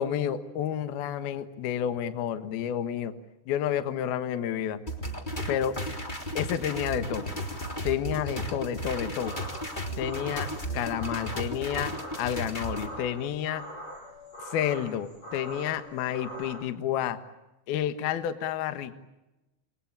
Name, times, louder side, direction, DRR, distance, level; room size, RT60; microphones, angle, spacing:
voice 1, 0.0-3.1 3.5-4.8 5.5-5.7 6.3-7.2 7.8-9.3 10.0-10.5 10.7-13.6 14.5-17.2 17.7-18.9, left 10 dB, 65° left, 11 dB, 3.0 m, -30 dB
sound 1, 4.9-12.9, equal, 10° left, 2.7 m, -34 dB
sound 2, 9.2-16.6, equal, 35° left, 6.9 m, -43 dB
29.0 x 23.5 x 8.8 m, 1.0 s
omnidirectional pair, 5.3 m